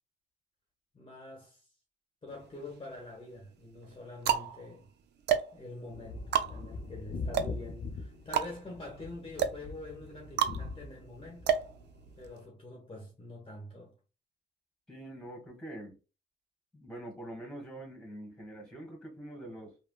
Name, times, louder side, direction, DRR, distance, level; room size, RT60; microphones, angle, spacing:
voice 1, 0.9-1.7 2.2-4.9 5.5-11.6 12.2-13.9, left 2 dB, 25° left, 1.0 m, -46 dB
sound 1, 2.3-3.0 3.7-12.4, right 9 dB, 60° right, 0.5 m, -33 dB
sound 2, 5.9-12.3, left 3 dB, 60° left, 0.8 m, -42 dB
voice 2, 14.9-16.0 16.7-19.8, right 1 dB, 5° left, 1.4 m, -44 dB
3.4 x 2.2 x 2.2 m
cardioid pair, 90°, 20 cm